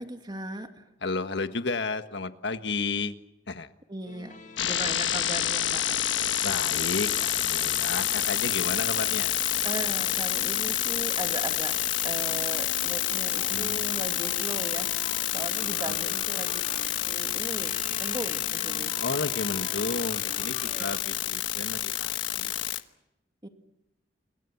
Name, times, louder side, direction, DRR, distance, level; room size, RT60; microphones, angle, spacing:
voice 1, 0.0-0.9 3.9-6.0 9.6-11.7 12.0-16.6 17.0-19.0 20.6-21.0 23.4-23.5, right 2 dB, 25° right, 6 dB, 2.3 m, -38 dB
voice 2, 1.0-3.1 3.5-3.7 4.6-4.7 6.4-9.3 13.5-14.1 15.8-16.6 19.0-22.5, left 3 dB, 70° left, 9 dB, 1.5 m, -33 dB
sound 1, 4.1-21.0, left 3 dB, 45° left, 2.2 m, -46 dB
sound 2, 4.6-22.8, left 11 dB, 85° left, 1.2 m, -28 dB
sound 3, 8.5-9.4 11.6-12.2 14.3-14.8 17.6-18.4, right 1 dB, 10° right, 2.3 m, -51 dB
29.0 x 23.0 x 7.2 m, 0.91 s
head